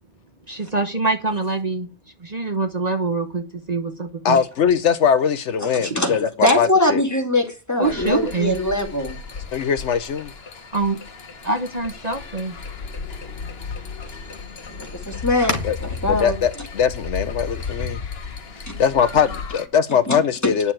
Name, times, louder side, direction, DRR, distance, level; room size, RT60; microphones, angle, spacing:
voice 1, 0.5-1.9 2.2-4.4 7.8-8.6 10.7-11.0 11.4-12.6, right 3 dB, 35° right, 1.2 m, -24 dB
voice 2, 4.2-7.0 9.5-10.3 15.6-15.8 16.1-18.0 18.8-20.7, left 7 dB, 75° left, 1.1 m, -21 dB
voice 3, 5.6-9.2 14.7-16.4 18.7-18.8 20.1-20.2 20.4-20.5, left 1 dB, 15° left, 2.6 m, -22 dB
sound 1, 7.8-19.7, left 5 dB, 55° left, 1.5 m, -34 dB
9.7 x 7.1 x 8.9 m
omnidirectional pair, 1.3 m